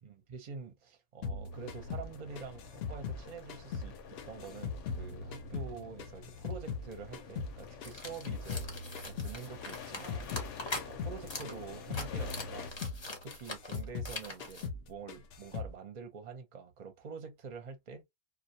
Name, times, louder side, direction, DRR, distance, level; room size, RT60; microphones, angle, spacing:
voice 1, 0.0-3.9 4.3-8.7 9.0-12.7 13.2-18.0, right 5 dB, 45° right, 0.6 m, -46 dB
sound 1, 1.2-3.9 4.2-6.9 7.1-10.5 10.8-11.2 11.4-14.2 14.4-14.8 15.1-15.7, left 5 dB, 65° left, 0.8 m, -40 dB
sound 2, 1.5-12.7, left 6 dB, 85° left, 1.0 m, -49 dB
sound 3, 7.8-10.9 11.3-11.5 11.8-14.7, left 2 dB, 30° left, 0.6 m, -42 dB
2.3 x 2.2 x 2.6 m
omnidirectional pair, 1.2 m